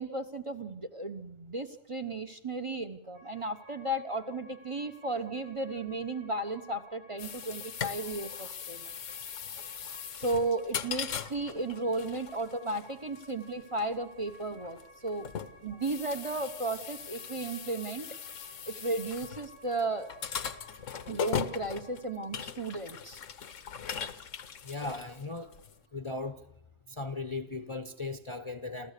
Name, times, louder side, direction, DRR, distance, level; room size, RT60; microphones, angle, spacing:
voice 1, 0.0-8.9 10.1-15.3 15.6-18.1 18.7-20.1 21.1-23.2, right 2 dB, 30° right, 9 dB, 0.9 m, -34 dB
sound 1, 3.1-22.4, left 1 dB, 60° right, 6.1 m, -56 dB
sound 2, 7.2-25.8, left 7 dB, 85° left, 1.3 m, -40 dB
voice 2, 24.6-25.5 25.9-26.4 26.9-28.9, left 3 dB, 30° left, 6 dB, 0.8 m, -37 dB
29.0 x 14.0 x 6.7 m, 0.77 s
omnidirectional pair, 1.3 m